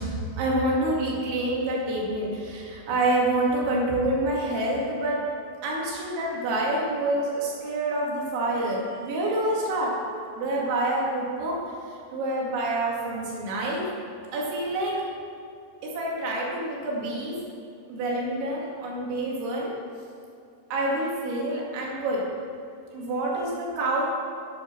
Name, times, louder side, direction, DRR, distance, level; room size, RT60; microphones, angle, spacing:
voice 1, 0.0-5.2 5.6-9.9 10.4-13.8 14.3-14.9 15.8-17.3 17.9-19.7 20.7-22.2 22.9-24.1, right 1 dB, 80° right, -4 dB, 4.6 m, -27 dB
10.0 x 8.4 x 6.8 m, 2.5 s
omnidirectional pair, 5.2 m